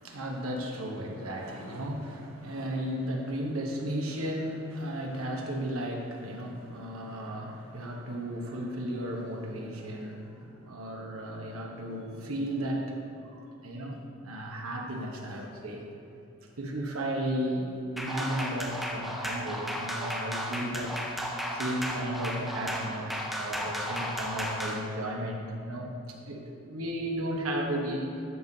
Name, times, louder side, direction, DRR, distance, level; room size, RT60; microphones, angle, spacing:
voice 1, 0.0-15.8 16.6-21.1 21.5-25.9 26.2-26.4 26.7-28.1, right 1 dB, 90° right, 0 dB, 1.1 m, -34 dB
sound 1, 18.0-24.8, equal, ahead, 0.6 m, -34 dB
12.5 x 5.4 x 2.8 m, 2.8 s
head